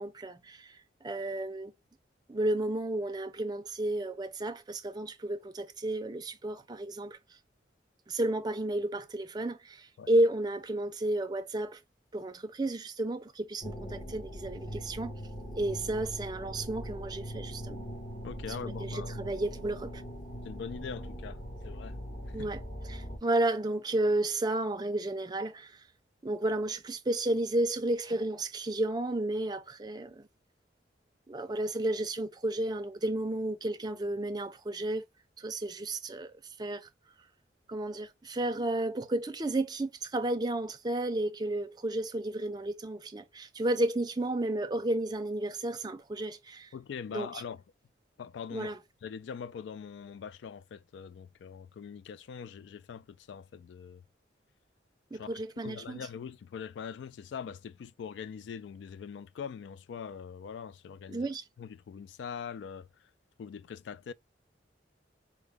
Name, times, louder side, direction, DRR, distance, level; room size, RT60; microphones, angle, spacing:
voice 1, 0.0-1.7 2.3-7.2 8.1-11.8 12.1-15.1 15.6-17.8 18.6-20.0 22.3-22.6 22.9-25.8 26.2-30.3 31.3-35.0 35.4-36.9 37.7-46.7 47.1-47.4 48.5-48.8 55.1-56.1 61.1-61.4, right 1 dB, 20° right, 0.4 m, -32 dB
sound 1, 13.6-23.2, equal, 40° left, 1.0 m, -41 dB
voice 2, 18.2-19.2 20.4-22.0 22.4-22.5 46.7-47.6 48.2-48.8 49.0-54.0 55.1-55.3 55.6-61.3 61.6-62.9 63.4-64.1, left 7 dB, 75° left, 0.3 m, -42 dB
4.5 x 2.0 x 3.3 m
head